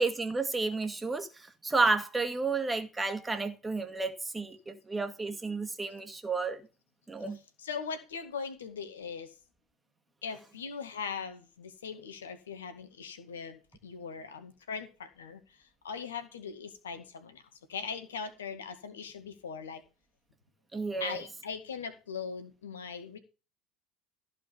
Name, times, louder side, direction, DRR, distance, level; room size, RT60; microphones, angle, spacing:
voice 1, 0.0-6.6 7.1-7.4 20.7-21.2, right 3 dB, 15° right, 2.1 m, -31 dB
voice 2, 7.6-9.3 10.2-15.4 15.8-17.4 17.7-19.8 21.0-23.2, left 6 dB, 80° left, 2.0 m, -40 dB
15.0 x 5.3 x 7.0 m
figure-of-eight pair, 70°, 0 cm